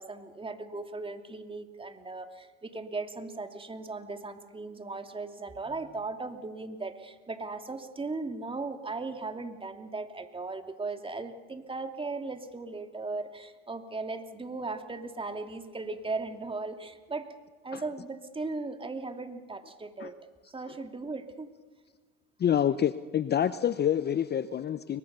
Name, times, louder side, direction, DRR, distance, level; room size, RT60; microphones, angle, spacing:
voice 1, 0.0-17.3 17.6-20.1 20.5-21.5, right 3 dB, 15° right, 7 dB, 2.7 m, -37 dB
voice 2, 22.4-25.0, left 9 dB, 30° left, 14 dB, 0.8 m, -27 dB
30.0 x 23.0 x 6.9 m, 1.4 s
supercardioid pair, 90°, 32 cm